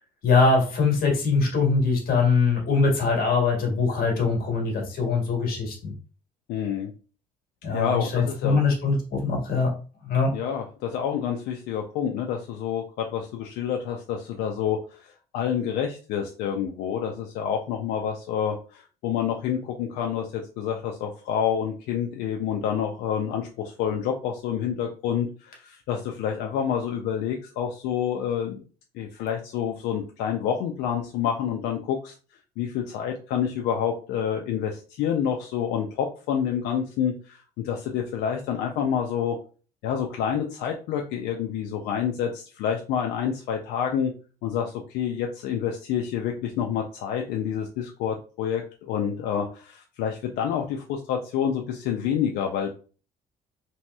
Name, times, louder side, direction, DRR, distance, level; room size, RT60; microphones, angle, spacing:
voice 1, 0.2-5.9 7.6-9.7 10.0-10.3, left 4 dB, 60° left, 1 dB, 1.4 m, -22 dB
voice 2, 6.5-6.9 7.7-8.6 10.3-28.6 28.9-32.1 32.6-39.4 39.8-44.1 44.4-52.7, left 8 dB, 90° left, 2 dB, 0.4 m, -28 dB
3.0 x 2.8 x 2.2 m, 0.37 s
cardioid pair, 110°, 17 cm